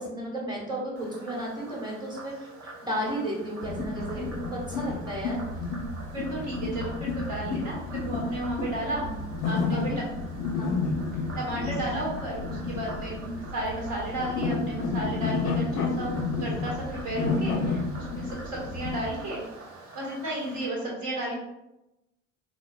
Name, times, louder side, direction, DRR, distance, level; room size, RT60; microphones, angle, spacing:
voice 1, 0.0-5.4 8.9-9.2 9.7-10.0 10.5-10.8 11.5-11.7, right 1 dB, 10° right, -4 dB, 1.2 m, -34 dB
Frog, 1.0-20.6, right 2 dB, 40° right, 0.8 m, -47 dB
sound 1, 3.6-19.1, left 3 dB, 45° left, 0.6 m, -31 dB
voice 2, 6.1-9.0 9.4-10.1 10.8-11.0 11.3-19.4 19.9-21.4, right 1 dB, 55° right, -4 dB, 1.3 m, -33 dB
4.3 x 2.1 x 2.4 m, 0.92 s
figure-of-eight pair, 55°, 36 cm